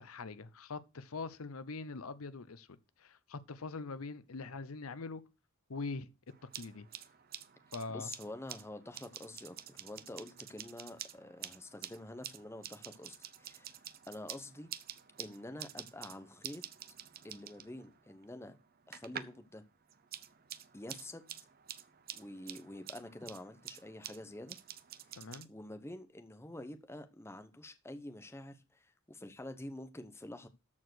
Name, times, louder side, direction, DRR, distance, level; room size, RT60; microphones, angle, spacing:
voice 1, 0.0-2.7 3.0-5.2 5.7-6.1 6.6-6.9 7.7-8.1 25.2-25.5, left 3 dB, 80° left, 0.7 m, -43 dB
sound 1, 6.3-19.5 19.8-25.5, right 10 dB, 45° right, 0.7 m, -49 dB
voice 2, 7.9-13.8 14.1-14.7 15.2-16.6 17.2-18.6 18.9-19.6 20.7-21.4 22.1-24.6 25.5-30.5, left 1 dB, 10° left, 0.9 m, -47 dB
13.0 x 4.7 x 6.2 m
head